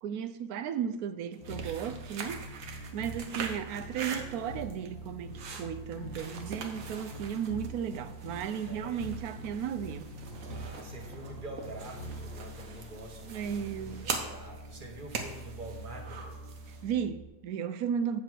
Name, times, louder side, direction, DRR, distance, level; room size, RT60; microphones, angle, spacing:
voice 1, 0.0-10.1 13.3-14.1 16.7-18.2, right 8 dB, 80° right, 1.1 m, -35 dB
sound 1, 1.3-16.9, right 5 dB, 65° right, 1.3 m, -43 dB
sound 2, 1.4-17.3, right 1 dB, 85° left, 1.6 m, -44 dB
voice 2, 3.1-3.4 8.6-9.1 10.2-16.2, right 2 dB, 35° right, 1.4 m, -46 dB
8.1 x 5.3 x 6.1 m
omnidirectional pair, 1.6 m